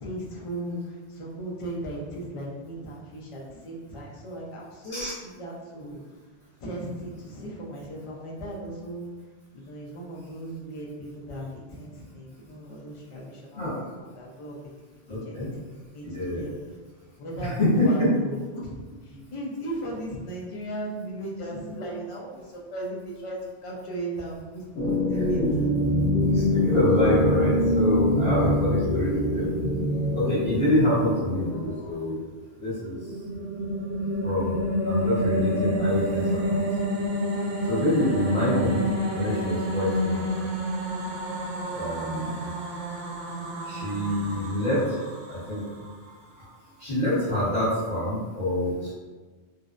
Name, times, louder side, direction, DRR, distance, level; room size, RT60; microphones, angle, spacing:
voice 1, 0.0-6.0 6.6-9.1 9.5-13.6 14.0-16.5 17.2-25.4, right 1 dB, 50° left, -3 dB, 0.4 m, -37 dB
voice 2, 15.1-15.5 16.1-16.4 17.4-18.1 21.5-21.7 25.1-25.3 26.3-29.5 30.1-32.2 32.6-32.9 34.2-34.6 34.8-36.6 37.7-38.9 39.1-40.5 41.7-42.5 43.6-45.6 46.8-48.9, left 1 dB, 30° left, -16 dB, 1.0 m, -26 dB
sound 1, 24.8-31.9, left 1 dB, 80° left, 1.0 m, -24 dB
sound 2, 32.8-46.1, equal, 65° right, 0.8 m, -29 dB
2.6 x 2.0 x 2.4 m, 1.3 s
omnidirectional pair, 1.2 m